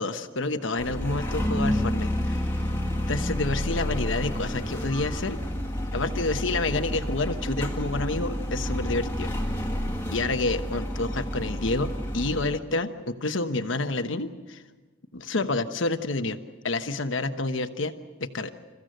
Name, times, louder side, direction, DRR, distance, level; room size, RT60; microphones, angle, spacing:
voice 1, 0.0-2.6 3.1-5.4 5.9-9.3 10.1-14.6 15.1-16.4 16.6-17.9 18.2-18.5, left 2 dB, 75° left, 8 dB, 1.1 m, -29 dB
sound 1, 0.8-12.6, equal, 10° left, 2.1 m, -30 dB
27.5 x 15.0 x 7.9 m, 1.4 s
head